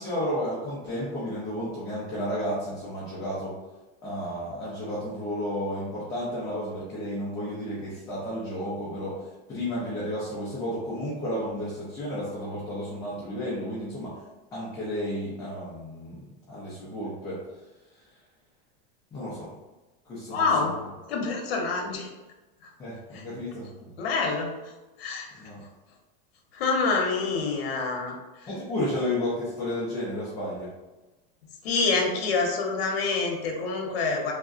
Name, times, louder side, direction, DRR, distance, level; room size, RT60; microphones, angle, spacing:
voice 1, 0.0-3.6 4.0-14.2 14.5-17.4 17.9-18.0 19.1-19.5 20.1-20.4 22.8-23.9 25.4-25.6 28.5-30.7, left 1 dB, 10° left, -8 dB, 0.4 m, -32 dB
voice 2, 20.3-20.8 21.1-22.1 22.6-22.7 23.1-23.2 24.0-24.7 25.0-25.4 26.5-28.5 31.6-34.3, left 4 dB, 90° left, 1 dB, 0.8 m, -27 dB
3.5 x 2.1 x 2.4 m, 1.1 s
supercardioid pair, 165°, 29 cm